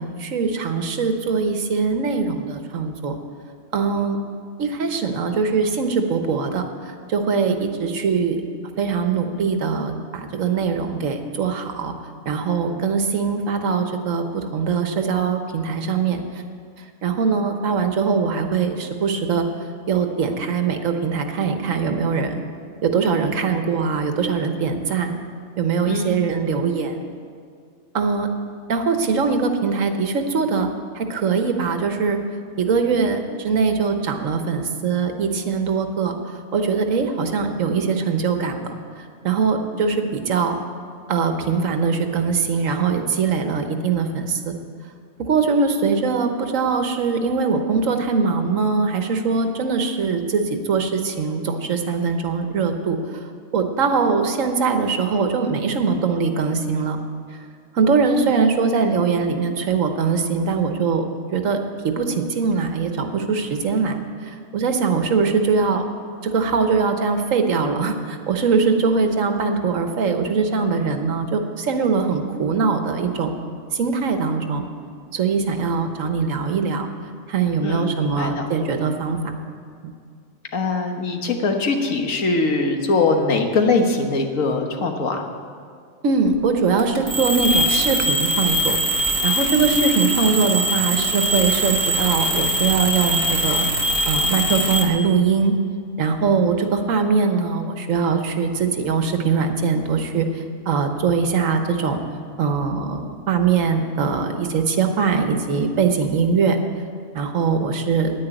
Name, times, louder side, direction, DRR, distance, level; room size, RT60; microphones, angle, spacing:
voice 1, 0.0-3.1 3.7-4.2 4.6-8.4 8.8-11.9 12.2-16.2 17.0-19.5 19.9-22.4 22.8-25.2 25.6-27.0 27.9-28.3 28.7-30.7 30.9-32.2 32.6-36.2 36.5-38.7 39.2-40.6 41.1-44.5 45.2-53.0 53.5-57.0 57.7-61.0 61.3-64.0 64.5-65.8 66.2-73.3 73.7-74.6 75.1-76.9 77.3-79.2 79.8-79.9 86.0-88.8 89.2-95.5 96.0-100.3 100.7-102.0 102.4-106.6 107.1-108.1, right 5 dB, 80° right, 6 dB, 1.4 m, -22 dB
voice 2, 77.6-78.4 80.5-85.2, left 3 dB, 85° left, 4 dB, 1.6 m, -22 dB
sound 1, 86.8-94.8, equal, 25° right, 1.4 m, -22 dB
10.0 x 9.6 x 9.1 m, 2.2 s
omnidirectional pair, 1.3 m